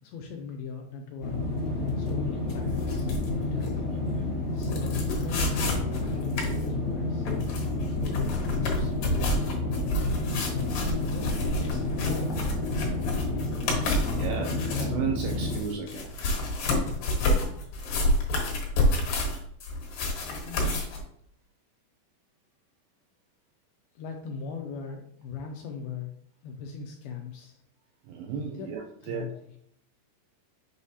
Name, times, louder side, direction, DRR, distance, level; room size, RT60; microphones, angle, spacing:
voice 1, 0.0-1.4 1.7-3.1 3.4-3.9 4.5-7.3 7.9-9.5 10.3-11.3 11.9-12.5 13.3-13.6 20.4-21.0 24.0-26.1 26.4-27.6 28.5-28.7 29.0-29.3, left 5 dB, 80° left, 2 dB, 2.3 m, -39 dB
sound 1, 1.2-15.6, left 2 dB, 50° left, 1.8 m, -30 dB
sound 2, 2.5-4.1 4.6-6.6 7.2-14.9 15.2-21.0, left 1 dB, 65° left, 2.6 m, -29 dB
voice 2, 14.1-16.2 28.0-29.4, right 6 dB, 80° right, 2 dB, 2.2 m, -34 dB
6.9 x 4.9 x 2.8 m, 0.68 s
omnidirectional pair, 4.9 m